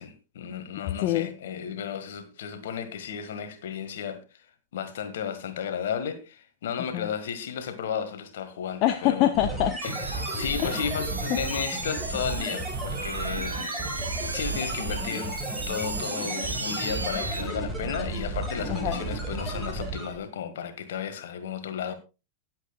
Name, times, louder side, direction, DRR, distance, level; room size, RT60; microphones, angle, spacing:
voice 1, 0.0-4.2 4.7-9.3 9.8-13.6 14.3-21.9, left 8 dB, 60° left, 1.8 m, -34 dB
voice 2, 8.8-9.7 10.6-10.9 11.3-11.4 18.7-19.0, left 13 dB, 40° left, 0.8 m, -24 dB
sound 1, 9.3-20.2, right 2 dB, 10° right, 4.8 m, -33 dB
sound 2, 9.8-17.4, right 3 dB, 80° right, 1.1 m, -35 dB
20.0 x 7.8 x 2.4 m
figure-of-eight pair, 90°, 0 cm